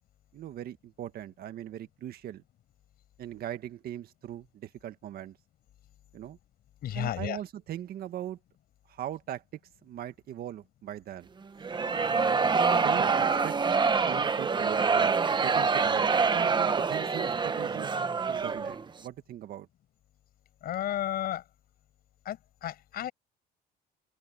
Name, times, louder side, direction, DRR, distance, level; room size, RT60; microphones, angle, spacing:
voice 1, 0.3-2.4 3.2-5.4 6.1-6.4 6.9-8.4 8.9-9.4 9.8-11.3 12.7-13.6 14.1-15.1 15.4-17.9 18.2-19.7, right 11 dB, 65° right, 1.8 m, -40 dB
voice 2, 6.8-7.4 20.6-21.4 22.2-23.1, left 12 dB, 65° left, 6.5 m, -33 dB
sound 1, 11.6-18.8, right 5 dB, 25° right, 1.3 m, -26 dB
open air
cardioid pair, 110°, 17 cm